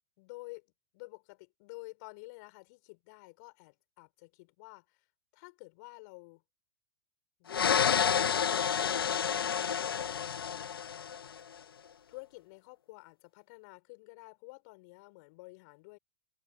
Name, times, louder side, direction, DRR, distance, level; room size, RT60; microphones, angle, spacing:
voice 1, 0.2-5.1 5.3-6.4 7.4-10.7 12.1-16.0, left 26 dB, 50° left, 5.5 m, -51 dB
sound 1, 7.5-11.4, left 8 dB, 75° left, 0.5 m, -29 dB
figure-of-eight pair, 95°, 12 cm